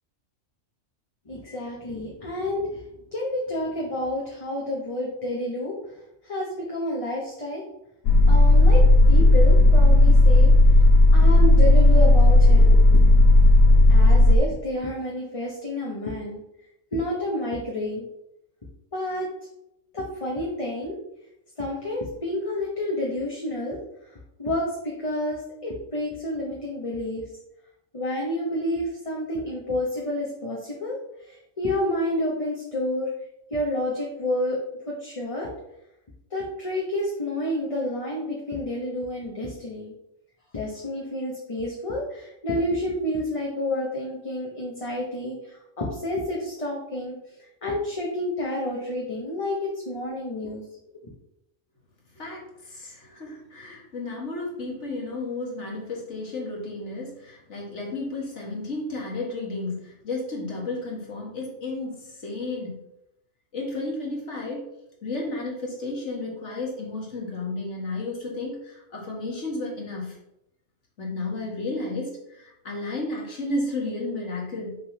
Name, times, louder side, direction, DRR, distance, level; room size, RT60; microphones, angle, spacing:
voice 1, 1.3-2.8 3.1-5.8 6.2-7.6 8.3-10.5 11.1-13.1 13.9-16.4 16.9-18.1 18.9-19.3 19.9-21.0 21.6-23.8 24.1-27.3 27.9-31.0 31.3-33.1 33.5-34.6 34.8-35.5 36.3-39.9 40.5-47.1 47.6-50.6 50.9-51.0, left 1 dB, 25° left, -3 dB, 1.2 m, -29 dB
sound 1, 8.1-14.4, left 2 dB, 85° left, 1.1 m, -14 dB
voice 2, 52.1-62.8 63.5-64.7 65.0-70.2 71.0-74.8, left 2 dB, 60° left, -2 dB, 2.3 m, -32 dB
6.4 x 4.0 x 5.6 m, 0.82 s
omnidirectional pair, 1.4 m